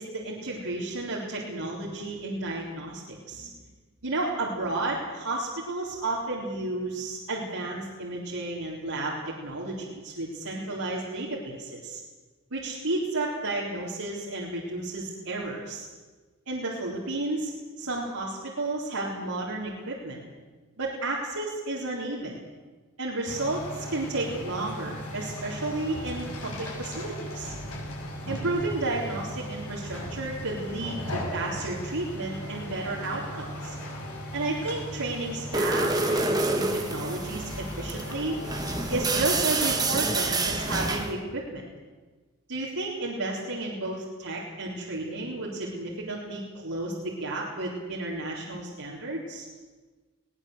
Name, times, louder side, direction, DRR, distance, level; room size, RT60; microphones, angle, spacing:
voice 1, 0.0-3.5 4.0-12.0 12.5-15.9 16.5-17.5 17.8-20.2 20.8-22.4 23.0-27.5 28.3-33.8 34.3-38.4 38.9-41.6 42.5-49.5, right 2 dB, 85° right, -5 dB, 3.9 m, -32 dB
sound 1, 23.3-41.1, equal, 85° left, 7.6 m, -37 dB
sound 2, 35.5-41.1, right 3 dB, 20° right, 1.7 m, -28 dB
22.0 x 18.0 x 8.1 m, 1.3 s
head